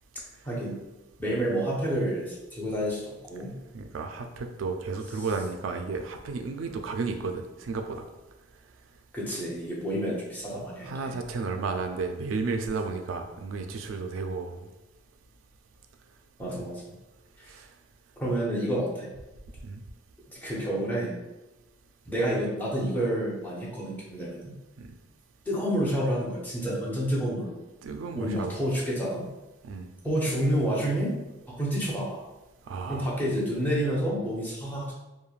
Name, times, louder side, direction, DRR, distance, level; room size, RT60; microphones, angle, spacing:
voice 1, 0.4-0.8 1.2-3.5 9.1-11.1 16.4-16.8 18.2-19.1 20.4-21.2 22.1-24.6 25.5-27.6 28.1-29.3 30.0-31.2 31.5-32.2 32.9-34.9, right 1 dB, 10° left, -6 dB, 0.6 m, -29 dB
voice 2, 3.7-8.0 10.8-14.6 16.5-16.6 17.5-17.6 19.6-19.8 24.8-24.9 27.8-28.6 29.6-29.9 32.7-33.1, right 4 dB, 85° right, 5 dB, 0.3 m, -33 dB
3.1 x 2.1 x 2.3 m, 1.0 s
head